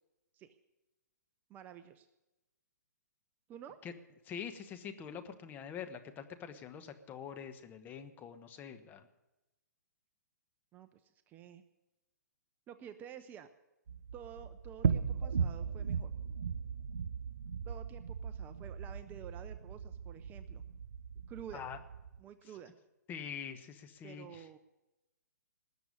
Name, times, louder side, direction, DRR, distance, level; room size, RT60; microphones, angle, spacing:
voice 1, 1.5-2.1 3.5-3.8 10.7-11.6 12.7-13.5 14.1-16.1 17.6-20.6 21.3-21.6 22.2-22.7 24.0-24.6, right 9 dB, 20° right, 10 dB, 0.6 m, -50 dB
voice 2, 4.2-9.1 21.5-21.8 23.1-24.5, left 7 dB, 20° left, 8 dB, 1.1 m, -45 dB
sound 1, 13.9-22.2, right 6 dB, 75° right, 0.8 m, -37 dB
19.0 x 6.9 x 9.6 m, 0.99 s
hypercardioid pair, 140°, 10 cm